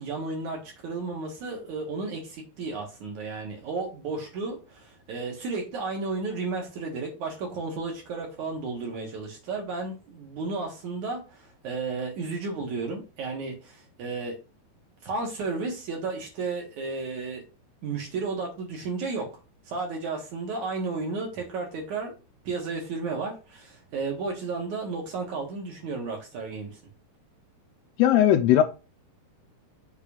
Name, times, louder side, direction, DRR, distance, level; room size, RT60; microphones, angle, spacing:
voice 1, 0.0-14.4 15.0-17.4 17.8-19.3 19.7-22.1 22.4-26.7, right 4 dB, 55° right, 1 dB, 2.5 m, -33 dB
voice 2, 28.0-28.6, left 11 dB, 85° left, 7 dB, 2.7 m, -18 dB
7.2 x 3.9 x 5.1 m, 0.31 s
omnidirectional pair, 4.6 m